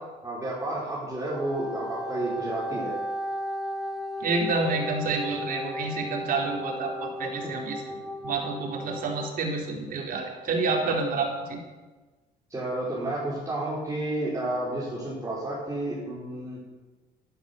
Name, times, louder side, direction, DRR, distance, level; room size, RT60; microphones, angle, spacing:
voice 1, 0.2-2.9 7.4-7.5 8.0-8.1 12.5-16.6, right 1 dB, 20° right, -8 dB, 5.0 m, -31 dB
Wind instrument woodwind instrument, 1.2-9.3, equal, ahead, 2.9 m, -35 dB
voice 2, 4.2-7.8 8.2-11.6, right 3 dB, 55° right, 0 dB, 4.2 m, -28 dB
12.5 x 12.0 x 7.1 m, 1.3 s
cardioid pair, 110°, 17 cm